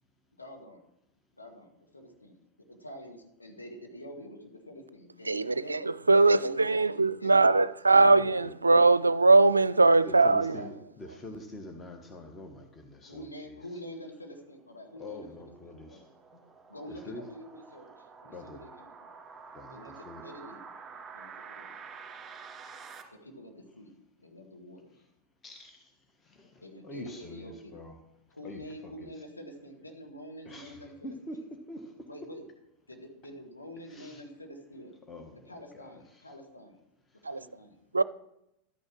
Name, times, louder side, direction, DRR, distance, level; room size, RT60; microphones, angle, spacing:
voice 1, 0.4-0.8 1.3-2.4 2.7-5.9 6.1-7.7 9.7-10.9 13.0-16.1 16.7-19.1 19.7-20.6 21.1-21.8 23.2-23.9 24.2-24.9 26.6-27.8 28.3-31.4 32.1-32.4 32.9-35.0 35.3-36.8 37.2-37.8, equal, 80° left, 2.3 m, -47 dB
voice 2, 5.3-5.8 6.1-10.6 37.3-37.4 37.9-38.0, right 3 dB, 80° right, 0.4 m, -21 dB
voice 3, 7.9-8.9 10.0-13.6 15.0-16.4 16.9-17.2 18.3-18.6 19.5-20.2 25.4-28.0 28.4-29.1 30.4-32.1 33.8-34.2 35.1-35.4 35.7-36.3 37.1-37.3, left 1 dB, 20° left, 1.4 m, -45 dB
sound 1, 14.3-23.0, right 5 dB, 20° right, 2.2 m, -49 dB
12.5 x 9.4 x 6.3 m
figure-of-eight pair, 90°, 0 cm